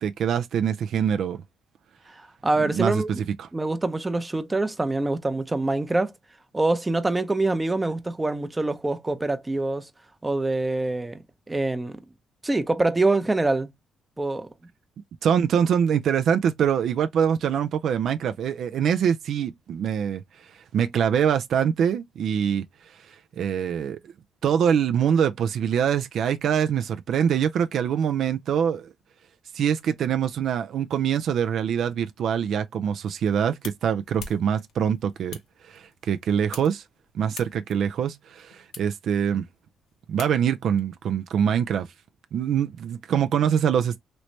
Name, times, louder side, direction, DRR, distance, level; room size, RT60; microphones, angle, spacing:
voice 1, 0.0-1.4 2.6-3.5 15.2-22.6 23.1-24.0 24.4-28.9 29.5-35.4 35.7-36.8 37.1-39.4 40.1-41.9 42.3-44.0, right 8 dB, 70° right, 0.3 m, -24 dB
voice 2, 2.1-3.1 3.5-6.1 6.5-9.9 10.2-11.2 11.5-12.0 12.4-13.7 14.2-14.5, right 2 dB, 15° right, 0.6 m, -25 dB
sound 1, 33.0-40.8, left 6 dB, 80° left, 1.0 m, -47 dB
3.1 x 3.1 x 2.6 m
cardioid pair, 90°, 0 cm